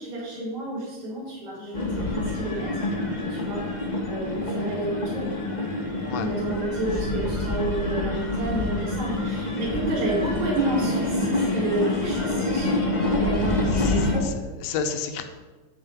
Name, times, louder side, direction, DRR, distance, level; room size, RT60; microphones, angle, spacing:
voice 1, 0.0-2.9 3.3-3.7 4.0-5.3 6.2-12.7 13.1-14.3, right 2 dB, 70° right, -8 dB, 5.1 m, -30 dB
sound 1, 1.7-14.2, left 2 dB, 40° left, 0.6 m, -26 dB
voice 2, 13.7-15.2, left 6 dB, 65° left, 7 dB, 1.9 m, -32 dB
11.5 x 4.4 x 8.1 m, 1.2 s
omnidirectional pair, 3.4 m